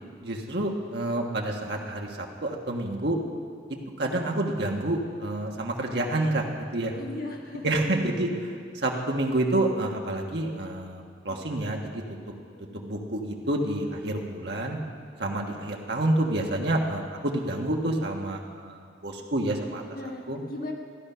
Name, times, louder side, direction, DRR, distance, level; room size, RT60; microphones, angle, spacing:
voice 1, 0.2-3.2 3.7-6.9 7.6-12.0 12.7-14.8 15.2-19.8 20.3-20.4, right 1 dB, 65° right, 1 dB, 1.4 m, -28 dB
voice 2, 6.9-7.8 11.3-11.4 12.5-12.8 15.4-15.6 19.9-20.7, left 2 dB, 55° left, 1 dB, 1.3 m, -38 dB
15.0 x 10.5 x 5.6 m, 2.1 s
head